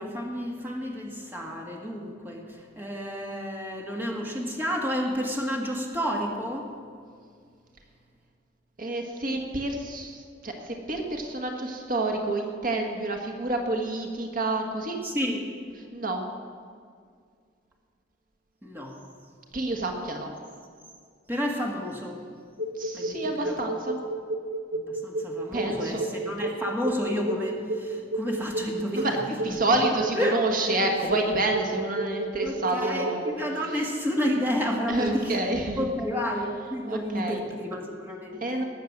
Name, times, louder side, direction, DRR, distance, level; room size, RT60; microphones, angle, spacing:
voice 1, 0.0-6.7 15.0-15.4 18.6-19.0 21.3-22.2 22.9-23.5 24.7-29.1 30.2-30.4 30.6-30.8 32.4-35.4 35.8-38.6, equal, 10° right, 0 dB, 1.8 m, -31 dB
voice 2, 8.8-15.0 15.9-16.3 19.5-20.3 22.8-24.0 25.5-26.1 28.9-33.3 34.9-35.9 36.9-37.4 38.4-38.6, right 2 dB, 45° right, 3 dB, 1.5 m, -28 dB
sound 1, 22.6-33.3, right 2 dB, 85° right, 1.2 m, -31 dB
19.5 x 7.4 x 7.3 m, 2.1 s
head